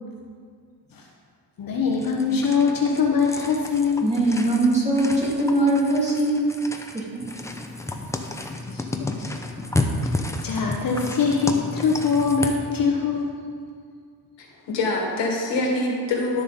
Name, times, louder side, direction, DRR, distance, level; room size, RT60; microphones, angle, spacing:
voice 1, 1.6-4.1 8.7-8.9 9.2-9.3 10.4-13.3, left 5 dB, 50° left, 0 dB, 1.1 m, -23 dB
sound 1, 1.9-12.6, left 2 dB, 5° left, 0.6 m, -31 dB
voice 2, 4.0-6.4 6.9-7.2, right 2 dB, 15° right, -5 dB, 2.4 m, -21 dB
voice 3, 14.4-16.4, left 2 dB, 90° left, 0 dB, 1.8 m, -25 dB
11.5 x 7.1 x 4.1 m, 2.1 s
cardioid pair, 125°, 43 cm